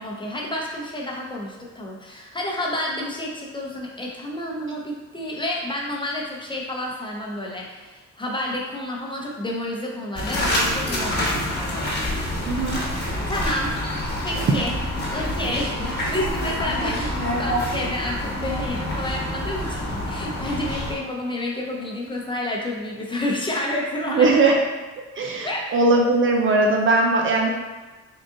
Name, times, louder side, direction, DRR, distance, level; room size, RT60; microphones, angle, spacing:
voice 1, 0.0-11.9 13.3-13.8 14.2-14.7 15.1-24.3 25.4-25.6, left 1 dB, 15° left, -2 dB, 0.8 m, -30 dB
sound 1, 10.1-20.9, left 1 dB, 35° left, 1.3 m, -27 dB
voice 2, 12.5-12.8 14.5-14.7 24.1-24.5 25.2-27.5, right 3 dB, 45° right, 0 dB, 0.5 m, -19 dB
3.8 x 2.4 x 3.7 m, 1.2 s
cardioid pair, 90°, 30 cm